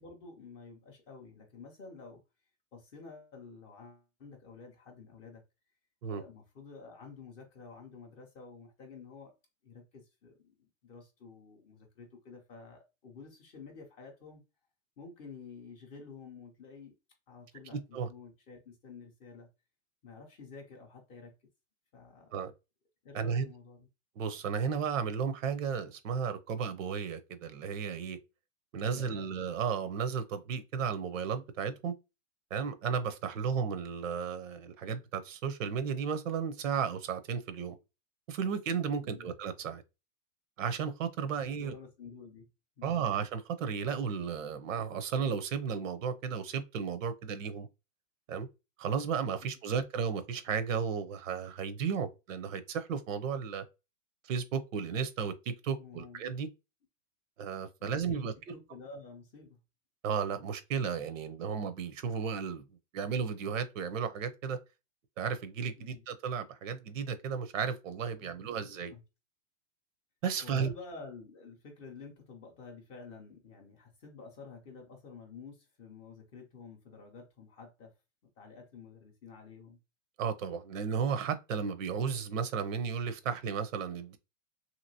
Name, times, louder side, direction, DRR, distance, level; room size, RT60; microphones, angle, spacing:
voice 1, 0.0-2.2 2.7-5.4 6.1-9.3 9.6-14.4 15.0-16.9 17.3-19.5 20.0-21.3 21.9-22.4 23.0-23.9 28.8-29.3 39.0-39.4 41.6-42.5 42.8-43.0 49.4-49.5 55.8-56.2 57.8-59.6 65.8-66.0 68.2-69.0 70.4-77.9 78.4-79.8, left 4 dB, 20° left, 0.3 m, -50 dB
voice 2, 17.7-18.1 22.3-22.5 23.1-23.5 24.2-28.2 28.7-31.9 32.5-37.8 38.3-39.8 40.6-41.7 42.8-47.7 48.3-48.5 48.8-53.6 54.2-56.5 57.4-58.3 60.0-62.6 62.9-64.6 65.2-68.9 70.2-70.7 80.2-84.2, right 6 dB, 75° right, 0.7 m, -34 dB
2.9 x 2.8 x 2.6 m
hypercardioid pair, 135°, 39 cm